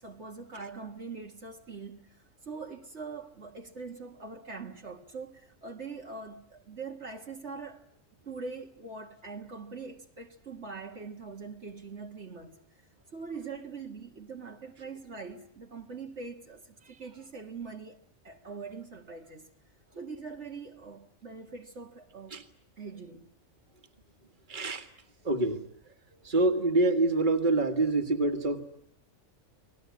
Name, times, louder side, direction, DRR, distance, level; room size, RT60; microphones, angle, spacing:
voice 1, 0.0-7.9 8.3-12.6 13.1-19.5 20.0-22.4 22.8-23.3, right 4 dB, 60° right, 2.0 m, -43 dB
voice 2, 24.5-24.9 25.2-25.6 26.2-28.6, right 2 dB, 40° right, 2.1 m, -26 dB
30.0 x 20.0 x 9.6 m
omnidirectional pair, 1.3 m